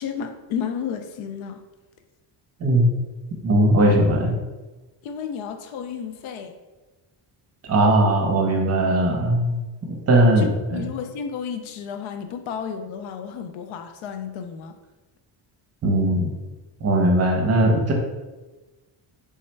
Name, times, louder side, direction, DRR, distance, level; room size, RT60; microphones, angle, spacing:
voice 1, 0.0-1.6 5.0-6.5 10.4-14.8, left 7 dB, 80° left, 7 dB, 0.6 m, -32 dB
voice 2, 3.4-4.4 7.7-9.6 10.1-10.5 10.7-10.8 15.8-16.3 16.8-17.9, right 1 dB, 30° right, 0 dB, 0.7 m, -19 dB
3.6 x 3.1 x 4.4 m, 1.2 s
cardioid pair, 170°, 48 cm